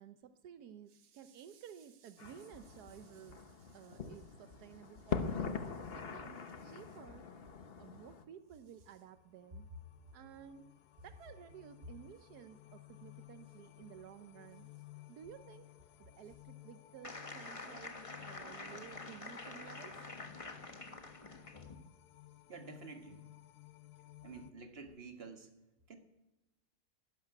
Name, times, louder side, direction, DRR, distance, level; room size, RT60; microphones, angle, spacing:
voice 1, 0.0-7.3 7.8-9.7 10.1-10.7 11.0-14.7 15.1-15.7 16.0-18.0 18.2-20.1, right 9 dB, 80° right, 10 dB, 1.3 m, -54 dB
sound 1, 2.2-8.2, left 5 dB, 40° left, 1.1 m, -43 dB
sound 2, 8.3-24.5, left 15 dB, 80° left, 1.3 m, -58 dB
sound 3, 17.0-21.7, left 2 dB, 20° left, 1.3 m, -47 dB
voice 2, 22.5-23.3 24.2-25.5 25.9-26.0, right 4 dB, 40° right, 5 dB, 1.9 m, -49 dB
12.5 x 12.0 x 9.9 m, 1.0 s
omnidirectional pair, 1.7 m